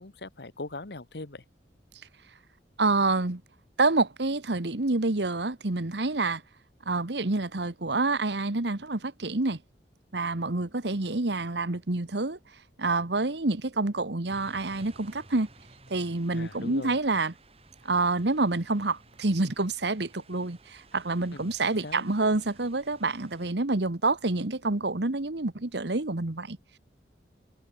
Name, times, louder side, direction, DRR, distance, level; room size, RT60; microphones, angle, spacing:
voice 1, 0.0-1.4 16.3-17.0 21.3-21.5 21.8-22.1, left 2 dB, 65° left, 1.4 m, -40 dB
voice 2, 2.8-3.4 3.8-6.4 6.8-9.6 10.1-12.4 12.8-15.5 15.9-17.3 17.8-26.8, right 3 dB, 75° right, 1.4 m, -27 dB
sound 1, 14.3-23.5, right 2 dB, 35° right, 7.5 m, -56 dB
head